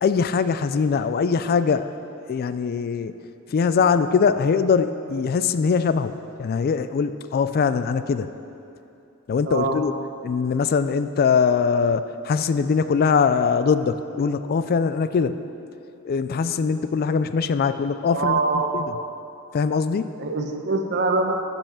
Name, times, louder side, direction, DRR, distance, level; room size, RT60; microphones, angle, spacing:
voice 1, 0.0-1.9 2.3-3.1 3.5-8.3 9.3-9.9 10.2-15.4 16.0-18.9 19.5-20.1, left 5 dB, 45° left, 12 dB, 0.3 m, -22 dB
voice 2, 9.5-9.8 18.1-18.9 20.2-21.4, right 3 dB, 50° right, 4 dB, 1.0 m, -23 dB
15.5 x 5.5 x 5.7 m, 2.7 s
head